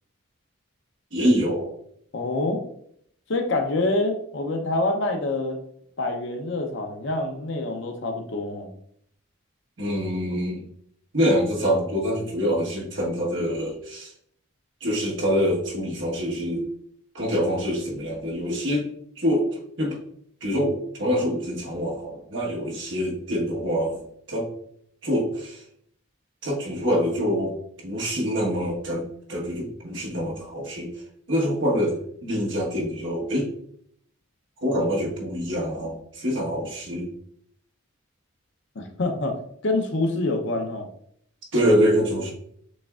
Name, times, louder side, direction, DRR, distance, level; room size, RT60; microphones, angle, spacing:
voice 1, 1.1-1.7 9.8-10.6 11.1-14.1 14.8-16.7 17.1-18.9 19.2-19.5 19.8-20.0 20.4-24.0 24.3-24.5 25.0-25.6 26.4-27.5 27.8-29.0 29.3-31.0 31.3-31.9 32.2-33.5 34.6-37.1 41.5-42.3, equal, 60° right, -3 dB, 1.4 m, -25 dB
voice 2, 2.1-2.6 3.3-5.6 6.0-8.7 38.7-40.9, left 2 dB, 55° left, 4 dB, 0.7 m, -26 dB
6.3 x 3.4 x 2.4 m, 0.68 s
head